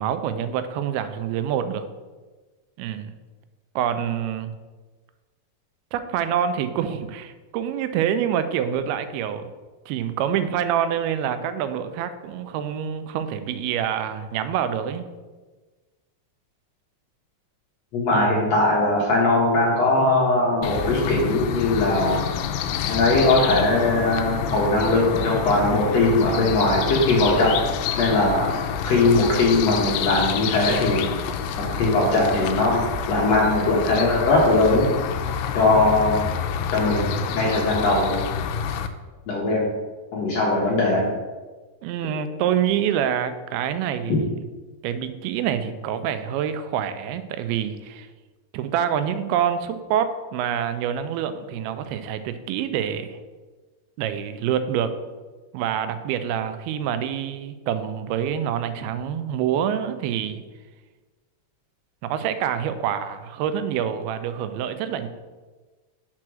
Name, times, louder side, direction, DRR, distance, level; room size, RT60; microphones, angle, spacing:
voice 1, 0.0-1.8 2.8-3.1 3.8-4.5 5.9-9.5 9.9-15.1 18.1-18.3 41.8-44.3 44.8-48.1 48.5-53.2 54.0-54.9 55.5-60.4 62.0-65.1, right 9 dB, 85° right, 10 dB, 2.5 m, -26 dB
voice 2, 17.9-22.3 22.9-27.5 28.0-28.5 28.8-31.1 31.6-32.8 33.1-34.9 35.6-36.2 36.7-38.2 39.3-39.7 40.1-41.1, left 2 dB, 70° left, -4 dB, 1.6 m, -20 dB
sound 1, 20.6-38.9, left 7 dB, 90° left, 1.9 m, -28 dB
6.1 x 4.4 x 6.1 m, 1.3 s
omnidirectional pair, 4.4 m